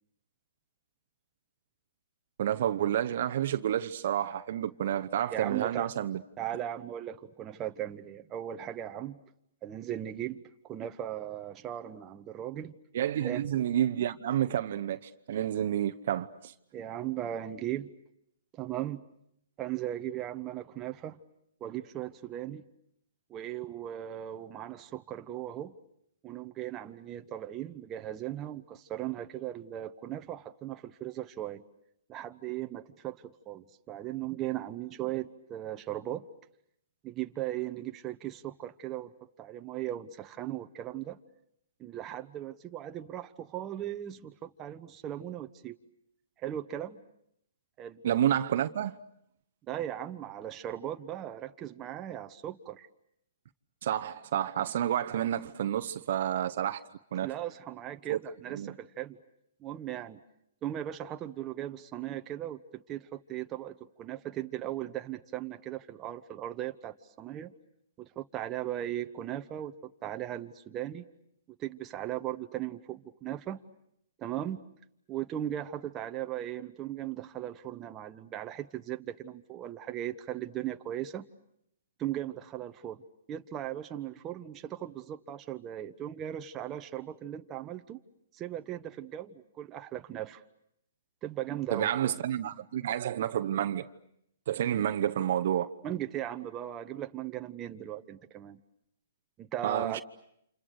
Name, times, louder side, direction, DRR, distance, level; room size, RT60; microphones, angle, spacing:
voice 1, 2.4-6.2 12.9-16.5 48.0-49.0 53.8-56.8 57.1-57.3 58.1-58.2 58.5-58.7 91.7-93.9 94.5-95.7 99.6-100.0, right 11 dB, 60° right, 1.0 m, -29 dB
voice 2, 5.3-5.9 6.4-9.2 9.6-12.8 13.2-13.4 16.7-17.9 18.5-19.0 19.6-21.2 21.6-22.6 23.3-25.7 26.2-31.6 32.1-36.3 37.0-39.1 39.4-41.2 41.8-45.8 46.4-47.0 47.8-48.0 49.7-52.9 57.2-59.2 59.6-60.2 60.6-67.5 68.0-69.7 70.0-71.0 71.6-73.6 74.2-74.6 75.1-81.2 82.0-83.0 83.3-88.0 88.3-90.4 91.2-91.9 95.8-98.6 99.4-100.0, right 12 dB, 25° right, 1.2 m, -38 dB
29.5 x 28.0 x 6.6 m
hypercardioid pair, 140°, 0 cm